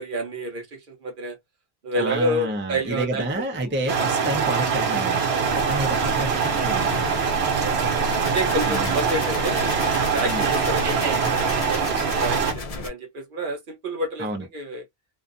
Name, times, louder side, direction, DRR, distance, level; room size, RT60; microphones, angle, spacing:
voice 1, 0.0-1.4 1.8-3.2 5.5-5.7 7.6-9.7 10.1-14.3 14.5-14.8, right 1 dB, 55° right, 0.9 m, -29 dB
voice 2, 2.0-5.3 5.5-7.0 8.7-9.0 10.2-10.4 14.2-14.5, right 1 dB, 15° right, 0.5 m, -29 dB
sound 1, 3.9-12.5, right 6 dB, 80° right, 1.0 m, -23 dB
sound 2, 5.4-12.9, left 2 dB, 45° left, 0.6 m, -33 dB
2.5 x 2.3 x 2.4 m
omnidirectional pair, 1.1 m